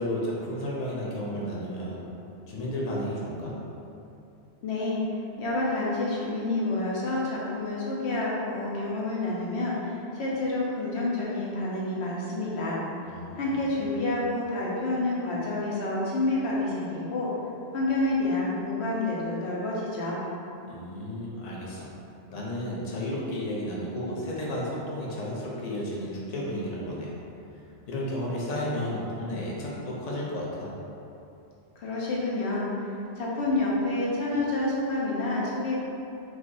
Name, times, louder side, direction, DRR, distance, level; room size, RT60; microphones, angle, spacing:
voice 1, 0.0-2.1 2.5-3.5 13.0-13.4 13.7-13.8 20.7-21.9 22.3-27.1 27.9-30.7, left 1 dB, 40° left, -5 dB, 0.7 m, -32 dB
voice 2, 4.6-5.0 5.4-12.8 13.3-17.3 17.7-20.2 31.8-35.8, left 2 dB, 75° left, -5 dB, 1.0 m, -28 dB
4.6 x 2.4 x 2.6 m, 2.7 s
omnidirectional pair, 1.1 m